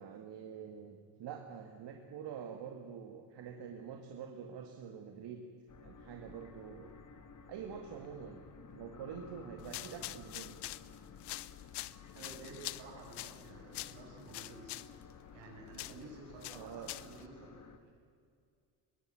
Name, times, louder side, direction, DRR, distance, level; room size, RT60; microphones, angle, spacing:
voice 1, 0.0-5.4 5.8-6.9 7.5-8.4 8.7-10.6 16.5-16.9, right 7 dB, 65° right, 4 dB, 2.2 m, -46 dB
sound 1, 5.7-17.8, left 5 dB, 40° left, 2.4 m, -55 dB
sound 2, 9.6-17.3, left 16 dB, 60° left, 0.8 m, -46 dB
voice 2, 12.1-14.8 15.3-17.8, right 3 dB, 80° right, -1 dB, 7.7 m, -52 dB
21.5 x 17.0 x 8.9 m, 2.2 s
supercardioid pair, 80°, 45 cm